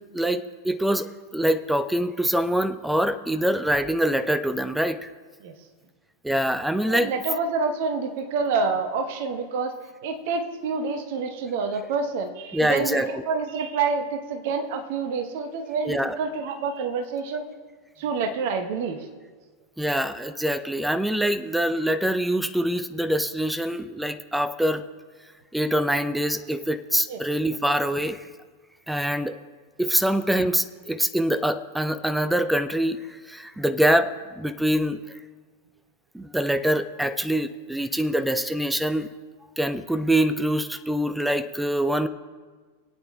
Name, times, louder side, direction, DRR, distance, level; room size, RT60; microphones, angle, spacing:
voice 1, 0.1-5.1 6.2-7.1 12.5-13.1 15.9-16.2 19.8-24.8 25.5-28.2 28.9-29.4 29.8-33.0 33.3-35.0 36.1-39.1 39.6-42.1, right 1 dB, 5° right, 11 dB, 0.4 m, -24 dB
voice 2, 6.8-9.7 10.0-17.5 18.0-19.1 27.1-27.2, right 4 dB, 50° right, 6 dB, 0.9 m, -27 dB
22.0 x 8.9 x 2.2 m, 1.5 s
figure-of-eight pair, 90°, 0 cm